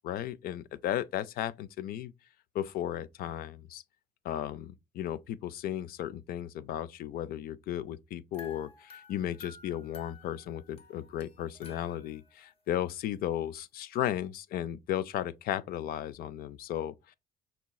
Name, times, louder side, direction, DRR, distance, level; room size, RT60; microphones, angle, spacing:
voice 1, 0.0-2.1 2.5-3.8 4.2-17.1, left 11 dB, 60° left, 0.4 m, -35 dB
sound 1, 8.3-12.4, left 4 dB, 35° left, 0.8 m, -53 dB
5.7 x 3.0 x 2.2 m
cardioid pair, 110°, 17 cm